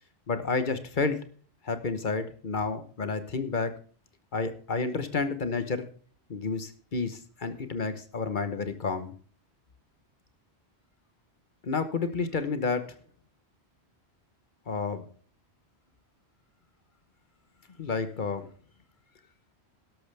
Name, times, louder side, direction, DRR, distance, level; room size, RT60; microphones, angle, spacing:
voice 1, 0.3-1.2 1.6-3.7 4.3-5.9 6.3-9.1 11.6-13.0 14.7-15.1 17.8-18.5, left 4 dB, 50° left, 10 dB, 1.2 m, -30 dB
12.0 x 12.0 x 3.4 m, 0.42 s
omnidirectional pair, 1.1 m